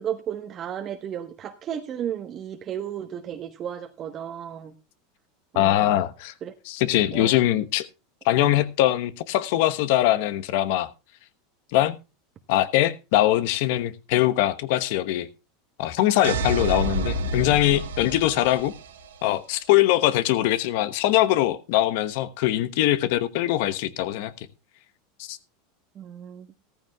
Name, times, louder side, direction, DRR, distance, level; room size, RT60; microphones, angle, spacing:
voice 1, 0.0-4.7 5.5-5.9 6.4-6.5 7.1-7.3 25.9-26.5, right 9 dB, 40° right, 1.2 m, -33 dB
voice 2, 5.5-6.3 6.7-7.9 8.2-10.9 11.7-12.0 12.5-15.3 15.8-18.7 19.2-24.5 25.2-25.4, left 14 dB, 65° left, 1.0 m, -22 dB
sound 1, 16.2-19.1, right 2 dB, 90° right, 1.9 m, -29 dB
15.0 x 14.0 x 2.3 m
hypercardioid pair, 105°, 0 cm